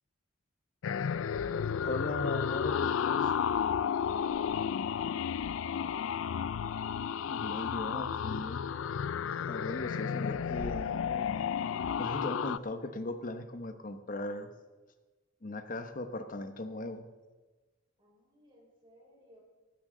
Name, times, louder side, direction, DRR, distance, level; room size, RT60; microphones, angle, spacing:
sound 1, 0.8-12.6, left 7 dB, 80° left, 0.4 m, -32 dB
voice 1, 1.9-3.3 7.3-8.6 9.5-11.4 11.8-14.5 15.4-17.0, left 2 dB, 45° left, 8 dB, 1.0 m, -38 dB
voice 2, 4.2-6.1 18.0-19.4, equal, 25° right, -2 dB, 4.9 m, -60 dB
16.5 x 13.0 x 3.9 m, 1.2 s
head